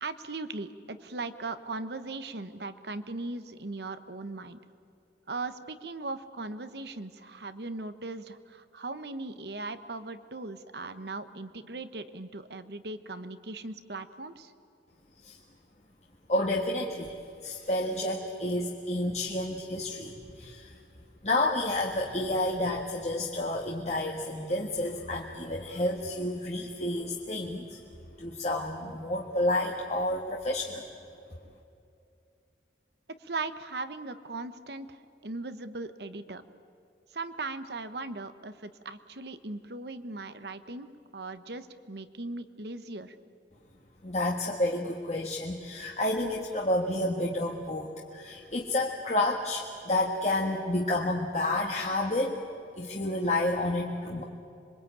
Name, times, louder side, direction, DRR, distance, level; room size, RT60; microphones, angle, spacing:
voice 1, 0.0-4.6 5.3-14.5 33.2-36.4 37.1-40.9 41.1-43.2, right 3 dB, 65° right, 11 dB, 1.1 m, -38 dB
voice 2, 16.3-17.2 17.4-20.7 21.2-27.8 28.2-30.8 44.0-52.4 52.8-54.2, left 1 dB, 40° left, -1 dB, 1.6 m, -30 dB
26.5 x 22.5 x 9.0 m, 2.6 s
head